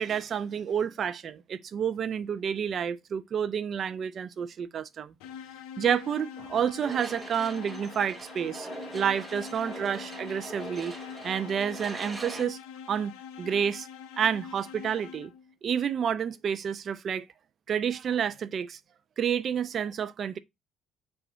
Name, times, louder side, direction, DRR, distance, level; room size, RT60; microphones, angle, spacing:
voice 1, 0.0-5.1 5.8-8.7 8.9-10.9 11.2-12.6 12.9-13.1 13.4-13.9 14.2-15.3 15.6-17.3 17.7-18.8 19.2-20.4, right 8 dB, 50° right, 0.5 m, -29 dB
sound 1, 5.2-15.5, left 8 dB, 70° left, 0.5 m, -44 dB
sound 2, 6.8-12.4, right 2 dB, 20° right, 1.1 m, -42 dB
4.8 x 2.5 x 4.4 m
hypercardioid pair, 55°, 0 cm